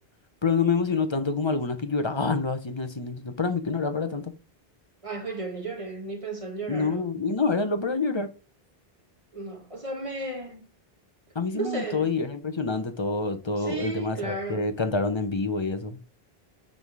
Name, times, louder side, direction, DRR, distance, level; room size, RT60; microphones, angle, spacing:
voice 1, 0.4-4.2 6.7-8.3 11.3-16.0, left 4 dB, 30° left, 1.0 m, -27 dB
voice 2, 5.0-7.2 9.3-10.7 11.5-12.1 13.6-14.7, right 3 dB, 30° right, 1.7 m, -34 dB
9.6 x 3.8 x 4.9 m
omnidirectional pair, 1.0 m